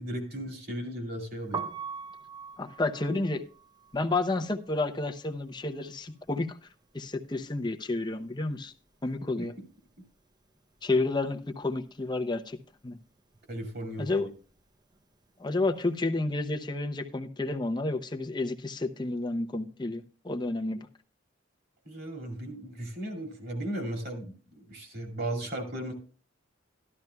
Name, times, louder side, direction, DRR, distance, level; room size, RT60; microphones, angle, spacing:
voice 1, 0.0-1.6 9.4-9.5 13.5-14.3 21.8-25.9, right 1 dB, 55° right, 2.5 m, -36 dB
Piano, 1.4-7.3 7.6-9.2 9.5-15.9, right 5 dB, 20° right, 0.7 m, -44 dB
voice 2, 2.6-3.4 3.9-6.5 6.9-8.7 9.0-9.5 10.8-12.6 12.8-13.0 14.0-14.3 15.4-20.9, left 2 dB, 25° left, 0.7 m, -30 dB
13.5 x 12.0 x 2.3 m
head